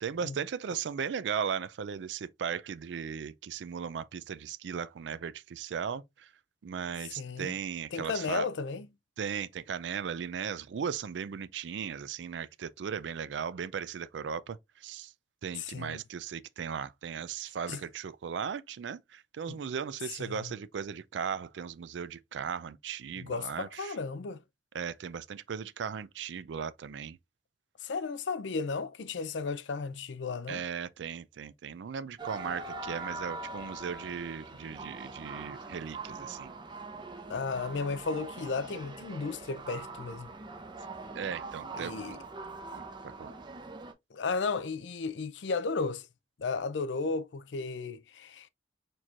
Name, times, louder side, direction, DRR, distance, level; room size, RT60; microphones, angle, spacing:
voice 1, 0.0-6.3 6.6-8.5 9.2-15.1 15.4-23.9 24.7-27.2 30.5-36.5 41.1-42.2 42.7-43.3, right 7 dB, 80° right, 0.4 m, -37 dB
voice 2, 7.2-7.5 7.9-8.9 15.6-16.0 17.7-17.8 19.5-19.6 20.2-20.5 23.2-24.4 27.8-30.6 37.3-40.3 41.7-42.2 44.1-46.1 46.4-48.5, left 4 dB, 85° left, 0.5 m, -34 dB
sound 1, 32.2-43.9, right 3 dB, 25° right, 0.7 m, -43 dB
4.5 x 4.4 x 2.4 m
head